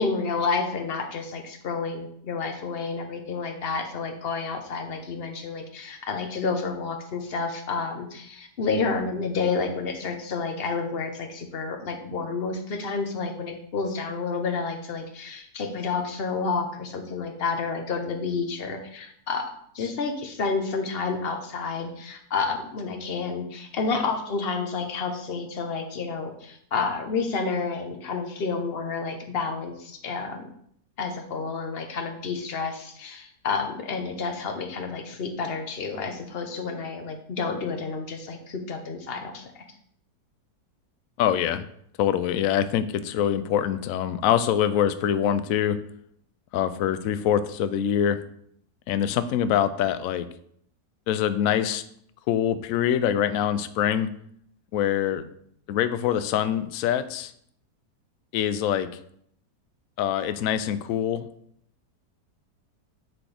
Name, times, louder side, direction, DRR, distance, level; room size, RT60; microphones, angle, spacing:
voice 1, 0.0-19.5 19.7-30.5 31.0-39.5, left 4 dB, 40° left, 4 dB, 1.0 m, -30 dB
voice 2, 41.2-41.7 42.0-45.8 46.5-48.2 48.9-50.3 51.1-51.8 52.3-54.1 54.7-55.4 55.7-57.3 58.3-58.9 60.0-61.3, left 10 dB, 70° left, 12 dB, 0.8 m, -24 dB
7.6 x 6.0 x 3.4 m, 0.67 s
omnidirectional pair, 1.9 m